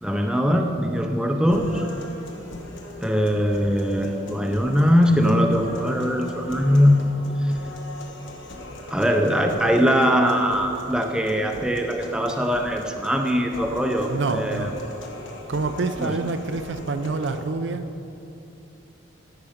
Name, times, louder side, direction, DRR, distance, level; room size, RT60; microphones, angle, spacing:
voice 1, 0.0-1.9 3.0-7.1 7.4-7.5 8.9-14.7 16.0-16.1, equal, 5° right, 3 dB, 0.5 m, -21 dB
sound 1, 1.5-17.5, left 1 dB, 75° left, 1.3 m, -40 dB
voice 2, 14.1-14.7 15.5-17.9, right 3 dB, 65° right, 9 dB, 0.5 m, -27 dB
14.0 x 5.9 x 5.1 m, 2.7 s
head